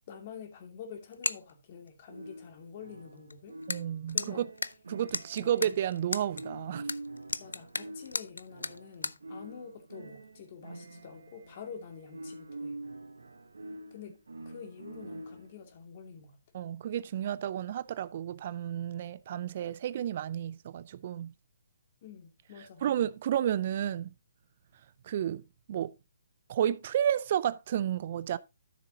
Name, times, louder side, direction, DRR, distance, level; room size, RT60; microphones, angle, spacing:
voice 1, 0.1-3.5 4.1-4.5 5.4-5.5 7.4-12.8 13.9-16.4 22.0-22.9, left 7 dB, 45° left, 2.4 m, -47 dB
sound 1, 1.1-1.5 1.9-2.0 3.3-3.4 3.6-3.8 4.1-6.4 6.9-9.2, left 3 dB, 85° left, 0.5 m, -34 dB
sound 2, 2.1-15.7, right 2 dB, 80° right, 1.0 m, -46 dB
voice 2, 3.7-4.5 4.9-6.9 16.5-21.3 22.8-24.1 25.0-25.4 25.7-25.9 26.5-28.4, right 10 dB, 45° right, 0.4 m, -31 dB
12.5 x 6.8 x 2.8 m
figure-of-eight pair, 140°, 0 cm